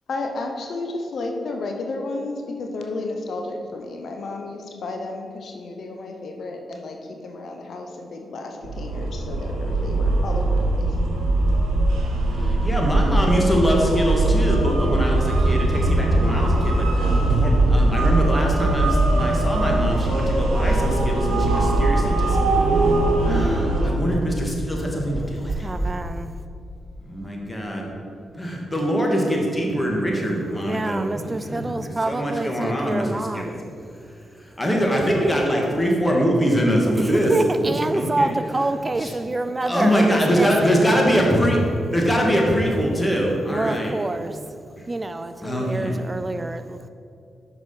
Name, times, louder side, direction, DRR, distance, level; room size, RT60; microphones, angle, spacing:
voice 1, 0.1-11.0, left 2 dB, 65° left, 2 dB, 0.8 m, -32 dB
sound 1, 8.6-23.9, right 2 dB, 90° right, 1.0 m, -21 dB
voice 2, 12.6-22.9 23.3-25.7 27.0-27.9 28.3-33.5 34.6-37.3 37.6-38.3 39.0-39.1 39.6-41.6 41.9-43.9 45.4-45.9, equal, 20° left, -1 dB, 1.8 m, -23 dB
sound 2, 20.6-25.9, right 2 dB, 45° right, 1.3 m, -27 dB
voice 3, 25.5-26.4 30.5-33.6 37.0-40.8 43.5-44.4 44.9-46.9, right 2 dB, 30° right, 9 dB, 0.3 m, -27 dB
6.2 x 5.0 x 5.5 m, 2.5 s
supercardioid pair, 50°, 0 cm